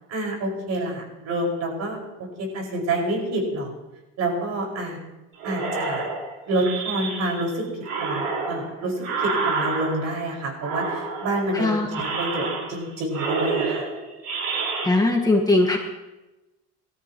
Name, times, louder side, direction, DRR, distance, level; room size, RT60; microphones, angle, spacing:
voice 1, 0.1-3.7 4.2-5.0 5.4-6.0 6.5-7.6 8.0-11.7 12.0-13.9, right 1 dB, 60° right, 0 dB, 5.6 m, -28 dB
sound 1, 5.4-7.5 7.8-10.2 10.6-11.5 11.9-12.9 13.1-14.9, right 4 dB, 75° right, 4.9 m, -28 dB
voice 2, 11.5-11.9 14.8-15.8, left 2 dB, 10° left, 0 dB, 1.7 m, -20 dB
23.0 x 13.5 x 3.1 m, 1.0 s
cardioid pair, 120°, 30 cm